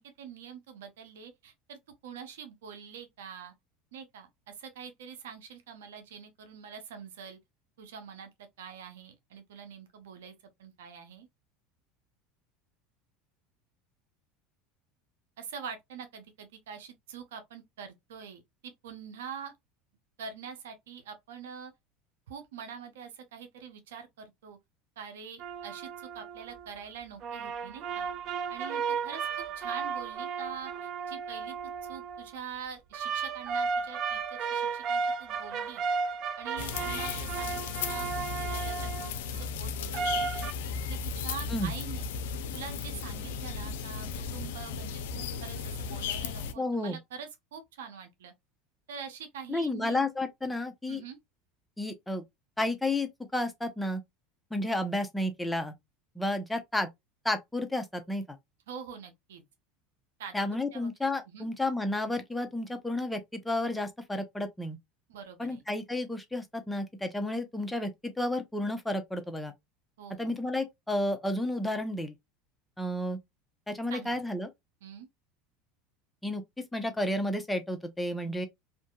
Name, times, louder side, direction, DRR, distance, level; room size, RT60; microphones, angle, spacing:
voice 1, 0.0-3.5 3.9-7.4 7.8-10.3 10.6-11.3 15.4-19.5 20.2-21.7 22.3-24.6 25.0-28.1 28.5-29.3 29.5-31.5 31.8-35.8 36.4-37.6 37.9-42.1 42.5-48.3 48.9-50.1 50.9-51.2 58.7-59.4 60.2-60.4 60.7-60.9 61.3-61.5 65.1-65.6 70.0-70.4 73.9-74.2 74.8-75.1, right 7 dB, 85° right, 0.7 m, -45 dB
sound 1, 25.4-26.7 27.2-32.3 32.9-39.1 39.9-40.5, right 5 dB, 50° right, 0.4 m, -34 dB
sound 2, 36.6-46.5, left 6 dB, 80° left, 0.4 m, -35 dB
voice 2, 46.6-47.0 49.5-51.0 51.8-52.2 52.6-54.0 54.5-55.7 56.2-56.9 57.2-58.4 60.3-64.8 65.4-69.5 70.2-72.1 72.8-73.2 73.7-74.5 76.2-76.4 76.7-78.5, left 1 dB, 5° left, 0.6 m, -31 dB
2.7 x 2.5 x 2.3 m
supercardioid pair, 105°, 0 cm